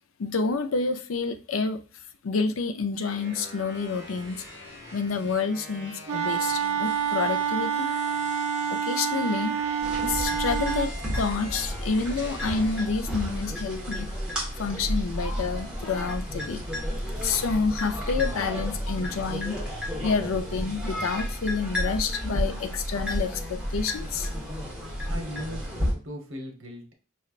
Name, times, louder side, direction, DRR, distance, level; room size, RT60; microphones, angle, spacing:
voice 1, 0.2-1.8 2.2-4.4 4.9-7.9 8.7-9.5 10.0-10.9 11.2-14.1 14.6-16.6 17.2-19.6 20.0-24.3, left 4 dB, 75° left, 0.5 m, -28 dB
sound 1, 3.0-12.9, equal, 50° left, 1.7 m, -44 dB
Wind instrument woodwind instrument, 6.1-10.9, right 7 dB, 85° right, 0.4 m, -27 dB
sound 2, 9.8-25.9, equal, 5° right, 1.2 m, -32 dB
voice 2, 25.1-26.9, equal, 65° right, 1.1 m, -38 dB
5.5 x 3.2 x 2.4 m
head